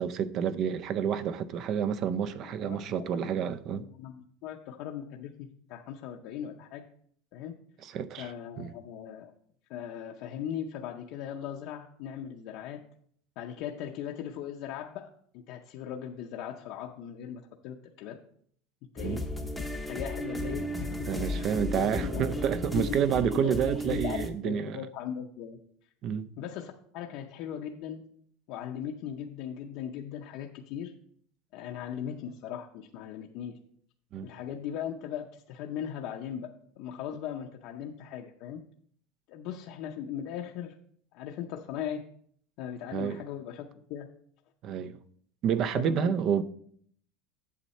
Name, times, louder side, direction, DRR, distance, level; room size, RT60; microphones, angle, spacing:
voice 1, 0.0-3.9 7.8-8.3 8.6-8.7 19.0-19.2 21.1-24.8 26.0-26.3 34.1-34.3 42.9-43.2 44.6-45.0 45.4-46.4, right 8 dB, 35° right, 0.4 m, -29 dB
voice 2, 2.6-3.3 3.7-6.8 7.3-7.6 8.2-9.3 9.7-12.8 13.4-15.1 15.3-18.2 18.9-19.2 19.9-22.3 22.6-25.6 26.4-28.1 28.5-30.9 31.5-33.6 34.2-36.5 36.8-38.6 39.3-40.8 41.1-42.0 42.6-44.1 45.8-46.2, left 9 dB, 50° left, 0.6 m, -39 dB
sound 1, 19.0-24.3, left 1 dB, ahead, 0.7 m, -34 dB
8.4 x 7.4 x 4.2 m
supercardioid pair, 165°, 0 cm